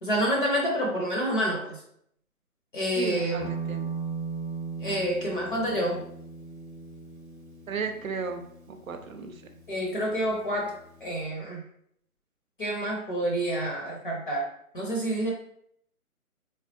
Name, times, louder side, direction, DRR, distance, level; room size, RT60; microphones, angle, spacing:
voice 1, 0.0-1.8 2.7-3.4 4.8-6.0 9.7-11.6 12.6-14.5 14.7-15.3, equal, 35° left, -1 dB, 0.7 m, -28 dB
voice 2, 3.0-3.9 7.7-9.4, right 5 dB, 65° right, 6 dB, 0.6 m, -35 dB
Guitar, 3.4-11.2, right 4 dB, 35° right, 0.9 m, -39 dB
3.4 x 3.2 x 2.7 m, 0.68 s
figure-of-eight pair, 140°, 44 cm